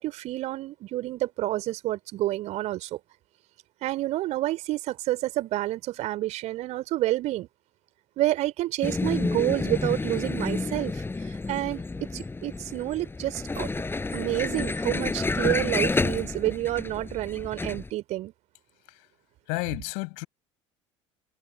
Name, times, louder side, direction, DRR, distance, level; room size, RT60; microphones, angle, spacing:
voice 1, 0.0-3.0 3.8-7.5 8.2-11.0 11.5-11.8 12.1-13.7 14.1-18.3, right 16 dB, 45° right, 3.3 m, -29 dB
Vehicle, 8.8-17.9, left 3 dB, 15° left, 7.0 m, -30 dB
voice 2, 19.5-20.3, left 35 dB, 55° left, 7.3 m, -31 dB
figure-of-eight pair, 65°, 16 cm